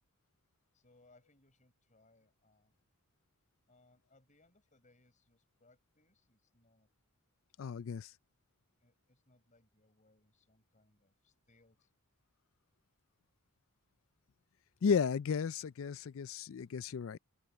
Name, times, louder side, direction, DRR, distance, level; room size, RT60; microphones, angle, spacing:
voice 1, 0.7-2.8 3.7-6.9 8.8-11.9, left 2 dB, 35° left, 5.2 m, -69 dB
voice 2, 7.6-8.1 14.8-17.2, left 6 dB, 60° left, 0.4 m, -34 dB
open air
head